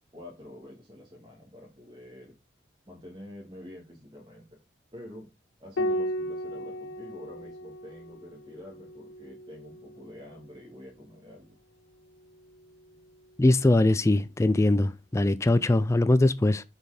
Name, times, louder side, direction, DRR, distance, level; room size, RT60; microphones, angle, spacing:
voice 1, 0.1-2.3 2.9-4.5 4.9-5.3 5.6-11.6, left 1 dB, 25° right, 2.0 m, -47 dB
Piano, 5.8-10.6 12.3-13.1, equal, 90° left, 0.6 m, -36 dB
voice 2, 13.4-16.6, left 2 dB, 15° left, 0.3 m, -22 dB
6.7 x 4.5 x 4.9 m
head